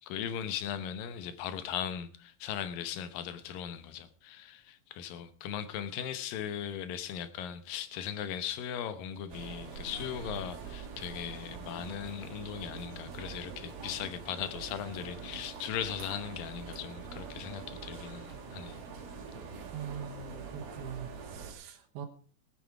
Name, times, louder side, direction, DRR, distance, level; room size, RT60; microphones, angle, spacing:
voice 1, 0.0-18.8, left 9 dB, 70° left, 2.2 m, -38 dB
sound 1, 9.3-21.5, right 5 dB, 55° right, 4.1 m, -44 dB
voice 2, 19.7-22.1, right 7 dB, 80° right, 3.3 m, -42 dB
19.0 x 9.2 x 4.7 m
omnidirectional pair, 5.1 m